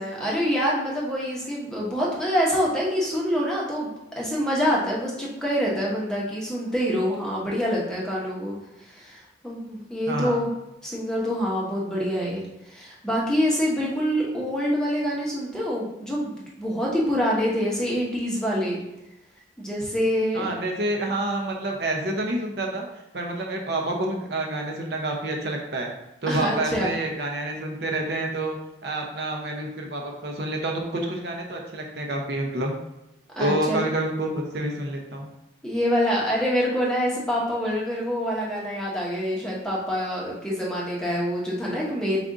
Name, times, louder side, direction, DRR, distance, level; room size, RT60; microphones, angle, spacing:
voice 1, 0.0-8.5 8.8-10.5 10.8-18.8 19.6-20.5 26.3-26.9 33.4-33.8 35.6-42.2, equal, 5° left, -5 dB, 0.9 m, -26 dB
voice 2, 10.1-10.4 20.3-22.9 23.1-25.9 26.2-28.5 28.8-32.7 33.4-35.3, right 1 dB, 60° right, 1 dB, 0.6 m, -28 dB
4.9 x 2.4 x 3.7 m, 0.93 s
head